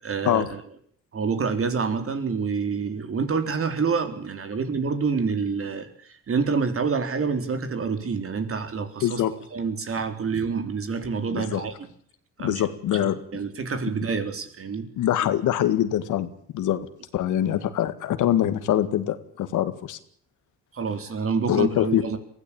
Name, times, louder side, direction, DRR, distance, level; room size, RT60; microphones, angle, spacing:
voice 1, 0.0-0.6 1.1-9.2 9.5-11.9 12.4-12.7 12.9-14.9 20.7-22.2, right 5 dB, 45° right, 8 dB, 3.9 m, -27 dB
voice 2, 9.0-9.3 11.3-11.6 12.4-13.2 15.0-16.9 17.1-20.0 21.5-22.1, left 11 dB, 85° left, 11 dB, 2.1 m, -24 dB
23.0 x 16.0 x 8.9 m, 0.62 s
cardioid pair, 90°, 30 cm